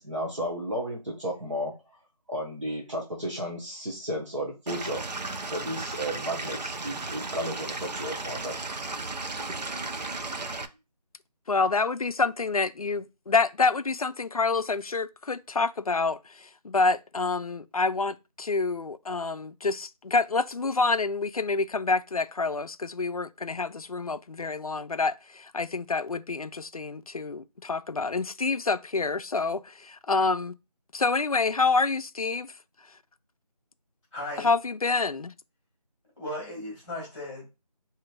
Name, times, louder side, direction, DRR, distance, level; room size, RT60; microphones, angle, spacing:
voice 1, 0.0-1.8 2.3-5.0 5.5-8.7 9.4-9.5, equal, 45° right, 1.1 m, -33 dB
Stream / Liquid, 4.7-10.7, right 3 dB, 85° right, 0.6 m, -35 dB
voice 2, 11.5-30.5 30.9-32.5 34.4-35.3, left 3 dB, 60° left, 0.4 m, -27 dB
voice 3, 34.1-34.5 36.2-37.5, left 1 dB, 10° left, 2.3 m, -36 dB
4.4 x 3.0 x 2.4 m
figure-of-eight pair, 170°, 21 cm